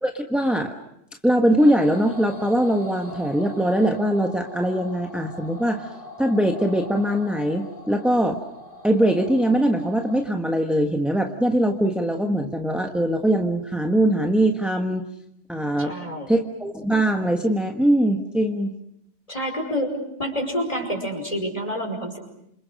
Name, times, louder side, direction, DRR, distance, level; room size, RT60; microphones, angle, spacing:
voice 1, 0.0-0.7 1.2-5.9 6.2-8.4 8.8-15.0 15.5-15.9 16.3-18.7, right 1 dB, ahead, 4 dB, 1.4 m, -22 dB
sound 1, 1.6-10.2, left 1 dB, 50° right, 4.3 m, -41 dB
voice 2, 15.8-16.3 19.3-22.2, equal, 30° left, 3 dB, 5.5 m, -28 dB
28.5 x 26.5 x 6.5 m, 0.75 s
omnidirectional pair, 1.2 m